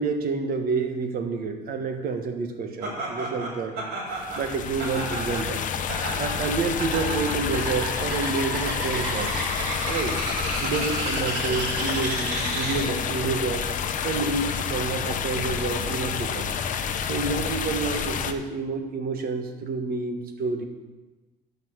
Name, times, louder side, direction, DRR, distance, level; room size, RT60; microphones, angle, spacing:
voice 1, 0.0-3.8 4.3-5.6 6.1-9.5 9.9-10.2 10.6-13.7 14.0-16.6 17.1-20.6, right 4 dB, 60° right, 5 dB, 1.5 m, -29 dB
Laughter, 2.8-13.1, right 2 dB, 80° right, 3.7 m, -32 dB
sound 1, 4.1-18.3, left 7 dB, 50° left, 0.8 m, -29 dB
12.5 x 6.0 x 6.0 m, 1.2 s
cardioid pair, 110°, 17 cm